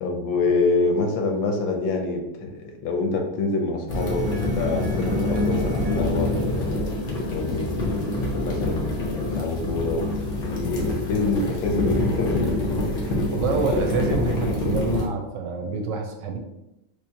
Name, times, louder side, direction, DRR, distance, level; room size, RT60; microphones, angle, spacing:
voice 1, 0.0-7.8 8.4-10.1 10.4-12.5, left 3 dB, 85° left, 3 dB, 1.4 m, -26 dB
sound 1, 3.9-15.1, left 2 dB, 65° left, 0.5 m, -26 dB
sound 2, 3.9-9.9, right 5 dB, ahead, 0.9 m, -45 dB
voice 2, 13.3-16.4, right 4 dB, 75° right, 3 dB, 1.2 m, -27 dB
3.5 x 3.1 x 2.8 m, 0.89 s
omnidirectional pair, 2.0 m